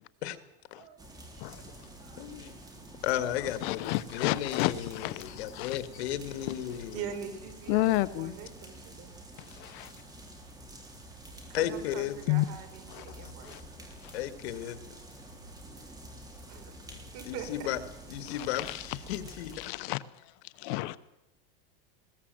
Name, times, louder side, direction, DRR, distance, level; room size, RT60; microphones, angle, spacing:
sound 1, 1.0-19.7, right 1 dB, 10° right, 3.5 m, -48 dB
voice 1, 1.3-2.3 6.9-9.1 11.5-13.5 16.5-16.6 17.1-17.5, right 8 dB, 50° right, 7 dB, 4.6 m, -43 dB
voice 2, 2.2-2.5 3.0-7.1 11.5-12.2 14.1-14.9 17.2-17.8 18.1-19.8, left 12 dB, 85° left, 10 dB, 2.1 m, -34 dB
voice 3, 3.6-5.8 7.7-8.3 9.4-9.9 12.3-12.5 12.9-13.6 14.0-14.1 18.5-18.8 19.6-20.0 20.4-21.0, left 19 dB, 55° left, 15 dB, 0.9 m, -31 dB
20.5 x 17.5 x 7.7 m, 0.90 s
supercardioid pair, 155°, 31 cm